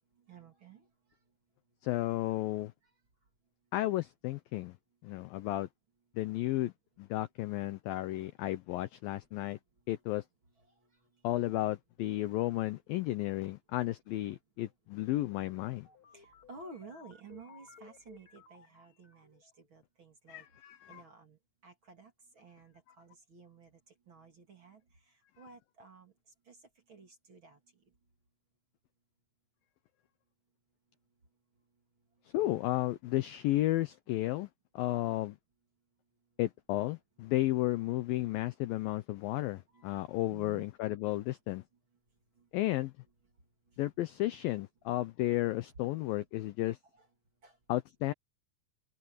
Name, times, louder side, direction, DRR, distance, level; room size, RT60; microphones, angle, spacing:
voice 1, 0.3-0.8 16.1-20.4 20.9-23.7 24.1-24.8 25.4-26.1 26.5-26.6 26.9-27.6 39.7-39.9 40.3-40.7 47.0-47.1 47.4-47.6, right 4 dB, 35° right, 2.8 m, -53 dB
voice 2, 1.8-2.7 3.7-4.8 5.0-5.7 6.2-6.7 7.0-9.6 9.9-10.2 11.2-15.9 20.3-21.0 32.3-34.5 34.8-35.4 36.4-41.6 42.5-42.9 43.8-46.8 47.7-48.1, left 16 dB, 85° left, 2.0 m, -33 dB
sound 1, 15.4-19.6, left 6 dB, 35° left, 2.7 m, -58 dB
open air
omnidirectional pair, 5.0 m